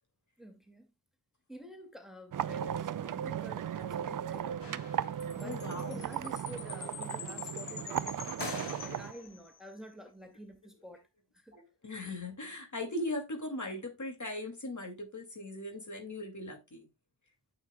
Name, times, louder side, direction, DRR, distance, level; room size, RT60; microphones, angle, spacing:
voice 1, 0.4-0.9 1.5-8.2 8.5-11.0 11.3-11.6, equal, ahead, 2.2 m, -49 dB
sound 1, 2.3-9.1, right 9 dB, 55° right, 0.5 m, -36 dB
sound 2, 4.6-5.6 8.4-9.4, left 3 dB, 90° left, 3.1 m, -44 dB
Chime, 5.2-9.7, left 8 dB, 65° left, 0.9 m, -46 dB
voice 2, 5.4-6.1 11.5-16.9, left 1 dB, 45° left, 2.5 m, -39 dB
8.8 x 7.3 x 2.3 m
cardioid pair, 50°, 40 cm